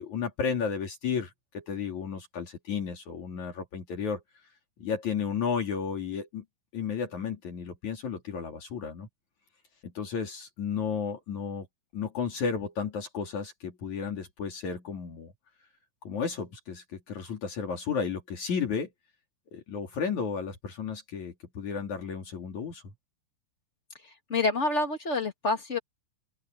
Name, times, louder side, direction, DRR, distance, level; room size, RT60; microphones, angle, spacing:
voice 1, 0.0-4.2 4.8-6.4 6.7-9.1 9.8-11.7 11.9-15.3 16.0-18.9 19.5-22.8, left 6 dB, 65° left, 4.2 m, -33 dB
voice 2, 24.3-25.8, left 3 dB, 25° left, 2.3 m, -27 dB
open air
omnidirectional pair, 3.6 m